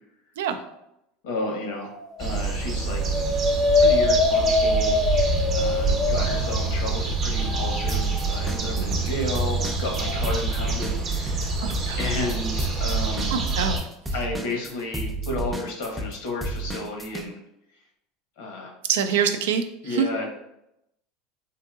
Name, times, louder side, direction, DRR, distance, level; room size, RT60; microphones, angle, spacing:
voice 1, 1.2-1.9 2.2-3.0 3.8-5.0 5.5-11.6 12.0-13.3 14.1-17.4 18.4-18.7 19.8-20.3, left 2 dB, 80° left, 1 dB, 0.9 m, -32 dB
sound 1, 1.7-2.3 2.7-6.9 7.4-8.7 10.0-10.2, left 3 dB, 40° left, 0.6 m, -24 dB
sound 2, 2.2-13.8, right 3 dB, 40° right, 0.8 m, -26 dB
sound 3, 7.9-9.1 9.4-17.3, right 2 dB, 5° right, 0.5 m, -31 dB
voice 2, 11.6-12.0 13.3-13.9 18.9-20.1, right 7 dB, 85° right, 8 dB, 0.3 m, -25 dB
3.7 x 2.7 x 2.3 m, 0.82 s
supercardioid pair, 110°, 0 cm